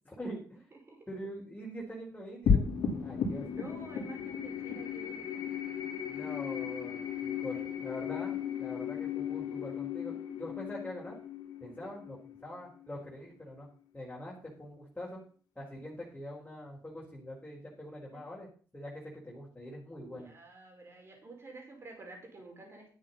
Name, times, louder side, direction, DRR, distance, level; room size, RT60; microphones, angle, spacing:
voice 1, 0.0-0.7 1.1-2.7 3.0-3.4 6.1-11.1 11.6-12.2 12.4-13.7 13.9-15.2 15.5-20.3, equal, 10° left, -5 dB, 4.6 m, -44 dB
voice 2, 0.7-1.1 3.4-5.5 7.3-7.8 18.1-18.2 19.9-22.9, right 2 dB, 35° right, 2 dB, 5.6 m, -50 dB
sound 1, 2.5-13.1, left 7 dB, 70° left, 2.9 m, -35 dB
12.0 x 7.8 x 5.6 m, 0.43 s
cardioid pair, 95°, 7 cm